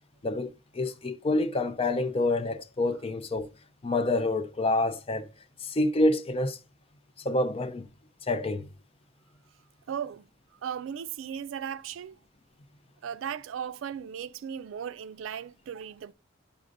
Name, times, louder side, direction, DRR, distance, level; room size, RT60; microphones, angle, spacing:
voice 1, 0.2-3.5 3.8-5.3 5.6-6.6 7.2-7.9 8.3-8.7, left 2 dB, 30° left, 0.5 m, -27 dB
voice 2, 9.9-10.3 10.6-12.2 13.0-16.1, right 8 dB, 80° right, 0.3 m, -36 dB
9.8 x 6.2 x 2.6 m
head